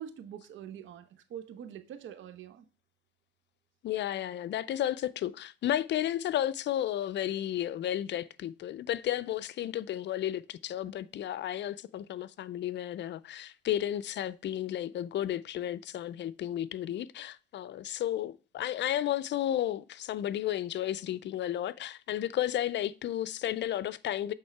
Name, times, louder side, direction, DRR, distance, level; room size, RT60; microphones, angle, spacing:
voice 1, 0.0-2.7, right 9 dB, 75° right, 0.9 m, -44 dB
voice 2, 3.8-24.3, left 12 dB, 65° left, 0.5 m, -33 dB
8.3 x 3.6 x 4.5 m
cardioid pair, 90°, 20 cm